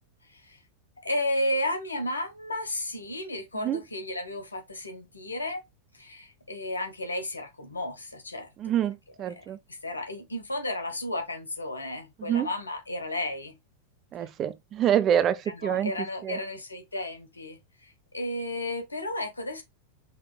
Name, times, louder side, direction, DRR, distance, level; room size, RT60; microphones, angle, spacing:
voice 1, 1.0-5.6 5.9-8.5 9.3-9.4 9.8-13.6 15.5-19.6, left 1 dB, 80° left, 1.0 m, -33 dB
voice 2, 8.6-9.6 12.2-12.5 14.1-15.9 16.2-16.4, right 10 dB, 30° right, 0.5 m, -26 dB
5.5 x 3.2 x 2.2 m
figure-of-eight pair, 90°, 0 cm